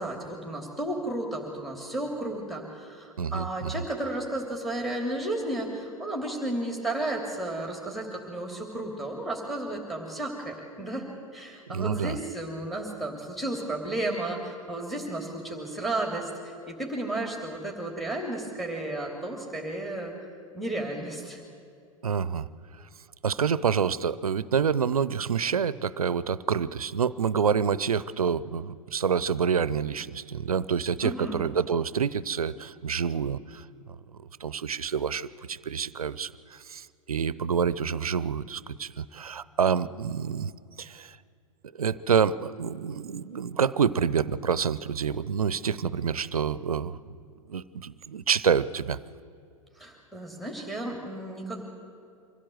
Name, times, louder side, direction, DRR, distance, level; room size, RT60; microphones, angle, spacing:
voice 1, 0.0-11.0 11.3-20.1 20.5-21.4 31.0-31.4 49.8-51.7, right 1 dB, ahead, 0 dB, 3.0 m, -33 dB
voice 2, 3.2-3.8 11.7-12.2 22.0-22.5 23.2-33.6 34.1-40.5 40.8-41.2 41.8-47.2 47.5-49.0, right 6 dB, 80° right, 18 dB, 0.7 m, -27 dB
25.0 x 16.0 x 7.9 m, 2.4 s
figure-of-eight pair, 95°, 18 cm